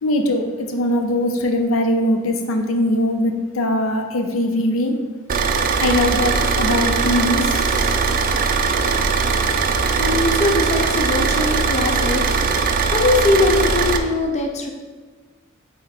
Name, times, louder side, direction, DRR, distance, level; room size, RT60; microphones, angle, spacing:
voice 1, 0.0-5.0 5.8-7.6, left 1 dB, 80° left, 5 dB, 0.7 m, -21 dB
Car / Idling, 5.3-14.0, right 5 dB, 45° right, 0.4 m, -20 dB
voice 2, 10.0-12.2 12.6-14.7, left 2 dB, 35° left, 2 dB, 0.6 m, -21 dB
6.6 x 3.9 x 4.1 m, 1.4 s
head